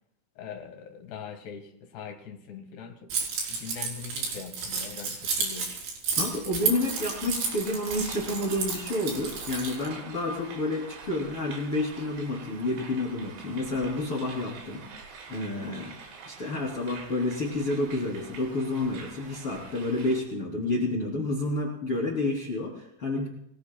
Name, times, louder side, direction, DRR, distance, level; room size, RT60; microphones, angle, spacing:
voice 1, 0.4-3.1 3.5-5.7, left 7 dB, 65° left, 4 dB, 3.6 m, -42 dB
Keys jangling, 3.1-9.9, right 5 dB, 65° right, 6.2 m, -31 dB
voice 2, 6.2-14.8 15.3-15.9 16.3-23.3, left 2 dB, 30° left, -3 dB, 3.4 m, -29 dB
sound 1, 6.6-20.2, right 5 dB, 90° right, 5.4 m, -46 dB
29.5 x 20.5 x 2.3 m, 0.73 s
omnidirectional pair, 5.6 m